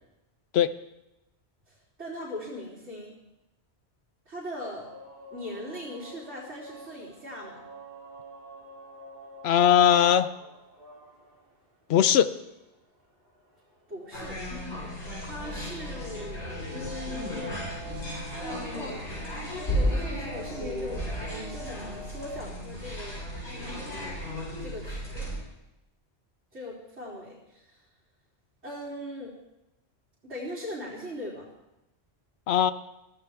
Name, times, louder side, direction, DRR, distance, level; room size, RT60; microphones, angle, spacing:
voice 1, 1.7-3.1 4.3-4.9 5.3-7.7 13.9-14.4 15.2-17.6 18.7-19.0 19.7-21.0 21.5-23.3 24.6-25.0 26.5-27.8 28.6-29.4 30.2-31.5, left 1 dB, 85° right, -7 dB, 3.8 m, -39 dB
sound 1, 4.6-22.5, right 2 dB, 55° right, 3.9 m, -48 dB
voice 2, 9.4-10.3 11.9-12.3 32.5-32.7, left 9 dB, 70° left, 13 dB, 0.9 m, -20 dB
sound 2, 14.1-25.4, equal, 90° left, 7.0 m, -34 dB
23.0 x 15.0 x 3.5 m, 0.90 s
omnidirectional pair, 1.1 m